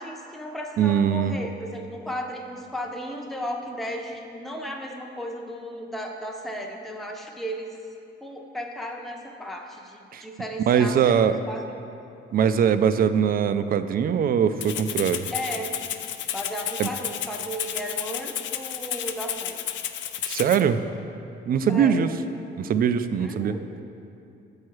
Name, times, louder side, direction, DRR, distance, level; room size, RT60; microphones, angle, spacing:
voice 1, 0.0-7.8 8.2-11.2 11.5-11.6 15.3-15.8 16.3-19.6 21.7-22.1 23.2-23.7, equal, ahead, 1 dB, 0.6 m, -35 dB
voice 2, 0.8-1.4 10.1-10.2 10.7-11.4 12.3-15.3 16.8-16.9 20.3-20.8 21.5-22.1 22.6-23.8, right 8 dB, 50° right, 12 dB, 0.4 m, -22 dB
Rattle (instrument), 14.6-20.6, left 10 dB, 70° left, 0.4 m, -32 dB
7.3 x 4.7 x 4.7 m, 2.7 s
cardioid pair, 90°, 20 cm